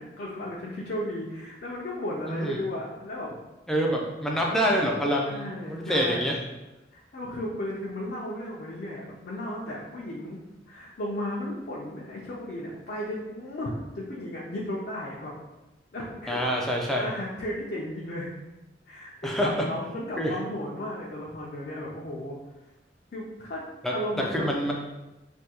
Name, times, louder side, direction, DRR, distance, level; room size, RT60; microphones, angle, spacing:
voice 1, 0.0-3.3 4.5-4.6 5.2-6.3 6.9-10.4 10.7-15.3 15.9-16.5 17.0-18.3 18.9-22.4 23.1-23.6 23.9-24.5, left 1 dB, 55° left, -5 dB, 0.5 m, -34 dB
voice 2, 3.7-6.3 16.3-17.1 19.2-19.7 20.2-20.3 23.8-24.7, equal, ahead, -2 dB, 0.4 m, -26 dB
3.4 x 2.3 x 2.8 m, 1.0 s
head